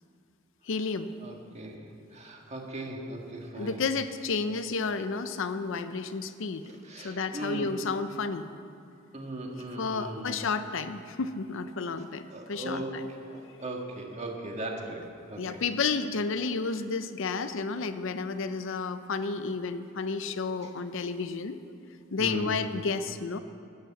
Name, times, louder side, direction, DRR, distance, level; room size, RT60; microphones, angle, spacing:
voice 1, 0.6-1.1 3.5-6.6 7.0-8.5 9.8-13.1 15.4-21.6 22.1-23.4, left 4 dB, 65° left, 10 dB, 0.6 m, -31 dB
voice 2, 1.2-1.8 2.1-3.8 6.9-7.7 9.1-10.4 12.3-13.0 13.3-15.0 15.3-15.6 22.2-22.6, right 1 dB, 35° right, 0 dB, 1.7 m, -38 dB
11.5 x 9.7 x 7.3 m, 2.7 s
head